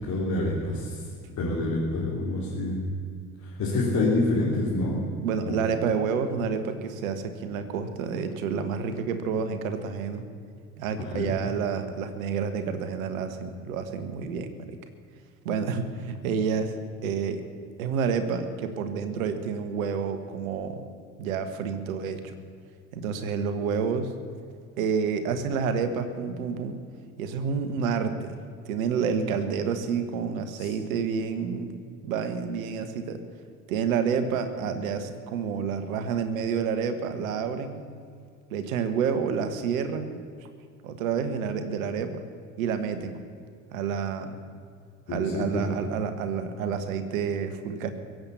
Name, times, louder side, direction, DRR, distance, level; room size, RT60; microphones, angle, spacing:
voice 1, 0.1-1.0 1.4-2.9 3.4-5.0 5.5-5.6 11.1-11.3 30.6-30.7 45.1-45.6, left 2 dB, 40° left, -6 dB, 3.7 m, -27 dB
voice 2, 5.2-10.2 10.8-14.7 15.4-16.7 17.0-17.4 17.8-20.8 21.2-22.3 22.9-24.1 24.8-26.8 27.2-28.4 28.6-31.7 32.0-33.2 33.7-37.8 38.5-40.2 40.8-42.2 42.6-43.2 43.7-44.4 45.1-47.9, right 6 dB, 70° right, 9 dB, 1.6 m, -29 dB
23.0 x 7.9 x 7.1 m, 2.2 s
figure-of-eight pair, 60°, 43 cm